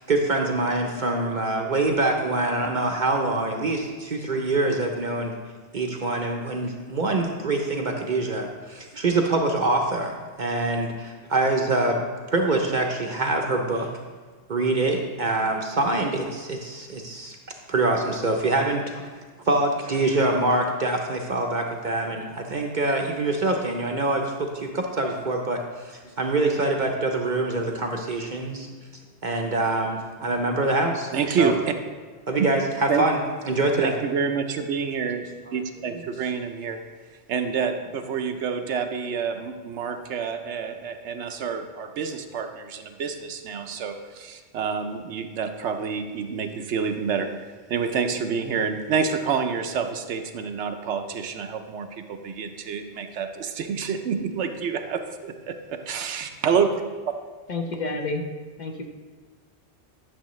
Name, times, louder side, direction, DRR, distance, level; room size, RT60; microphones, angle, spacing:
voice 1, 0.0-5.3 5.7-13.9 14.5-17.4 17.7-19.1 19.4-25.6 25.8-28.7 29.2-31.1 31.4-31.5 32.3-33.2 33.5-33.9, right 2 dB, 50° right, 2 dB, 0.7 m, -25 dB
voice 2, 31.1-31.7 32.9-33.0 33.8-35.2 35.5-36.8 37.3-57.2, right 6 dB, 75° right, 7 dB, 0.9 m, -28 dB
voice 3, 57.5-58.2 58.6-58.9, left 2 dB, 45° left, 3 dB, 0.8 m, -29 dB
11.0 x 7.0 x 3.1 m, 1.4 s
omnidirectional pair, 1.2 m